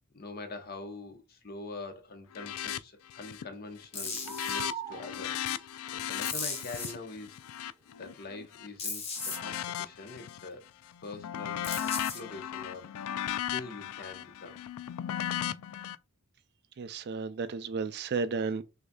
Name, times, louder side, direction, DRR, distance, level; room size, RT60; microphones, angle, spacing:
voice 1, 0.1-5.4 5.9-7.4 8.0-10.6 11.0-13.0 13.5-14.5, left 3 dB, 45° left, 1.0 m, -44 dB
sound 1, 2.3-2.8 3.1-3.5 3.8-8.7 9.2-10.5 10.9-16.0, left 10 dB, 85° left, 0.3 m, -36 dB
sound 2, 3.9-4.6 6.2-6.9 8.8-9.4 11.6-12.2, left 4 dB, 30° left, 1.4 m, -36 dB
sound 3, 4.3-5.7 9.4-9.6, right 5 dB, 15° right, 0.9 m, -40 dB
voice 2, 16.8-18.6, right 4 dB, 50° right, 0.4 m, -33 dB
6.3 x 2.7 x 2.3 m
head